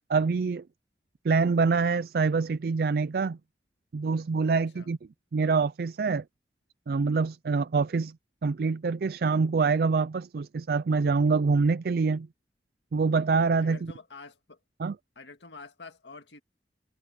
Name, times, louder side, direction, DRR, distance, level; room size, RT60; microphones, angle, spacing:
voice 1, 0.1-0.6 1.2-3.4 3.9-5.0 5.3-6.2 6.9-8.1 8.4-12.3 12.9-13.8 14.8-14.9, right 4 dB, 60° right, 0.4 m, -25 dB
voice 2, 4.5-4.9 13.6-14.6 15.2-16.4, left 4 dB, 90° left, 1.9 m, -47 dB
head